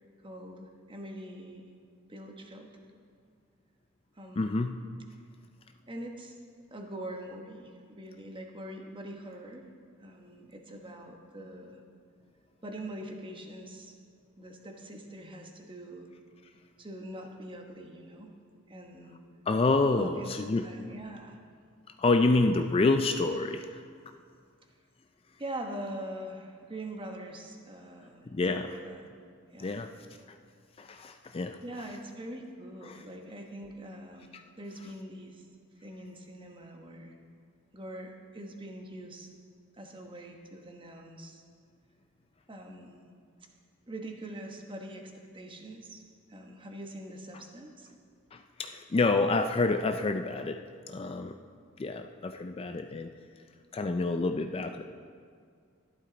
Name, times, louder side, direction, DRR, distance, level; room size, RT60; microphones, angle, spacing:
voice 1, 0.2-1.6 2.1-2.8 4.2-4.7 5.9-6.4 6.7-9.7 10.0-11.8 12.6-13.9 14.4-16.1 16.8-18.4 18.7-19.2 20.0-20.3 20.6-21.4 25.4-29.0 29.5-29.8 31.6-35.4 35.8-37.2 37.7-39.3 39.8-41.4 42.5-43.0 43.9-46.0 46.3-47.9 54.7-54.9, right 1 dB, 25° right, 2 dB, 1.1 m, -43 dB
voice 2, 4.4-4.8 19.5-20.6 22.0-23.7 28.3-28.7 29.6-29.9 30.8-31.6 32.9-33.0 48.3-50.6 50.9-51.3 51.8-53.1 53.7-54.9, left 3 dB, 25° left, 7 dB, 0.3 m, -28 dB
13.0 x 11.5 x 4.0 m, 2.1 s
head